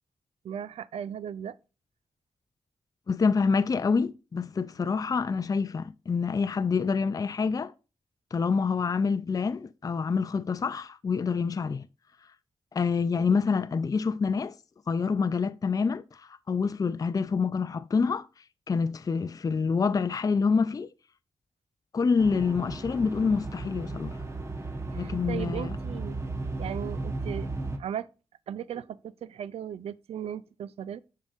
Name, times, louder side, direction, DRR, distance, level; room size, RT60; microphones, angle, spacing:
voice 1, 0.4-1.6 13.2-13.3 24.9-26.2 26.6-27.5 27.8-28.1 28.5-31.0, right 9 dB, 85° right, 0.4 m, -37 dB
voice 2, 3.1-7.7 8.3-11.9 12.7-14.5 14.9-18.3 18.7-20.9 21.9-24.2 25.0-25.7, left 5 dB, 35° left, 0.4 m, -27 dB
sound 1, 22.2-27.8, right 2 dB, 25° right, 1.0 m, -35 dB
6.9 x 5.6 x 2.5 m
cardioid pair, 65°, 10 cm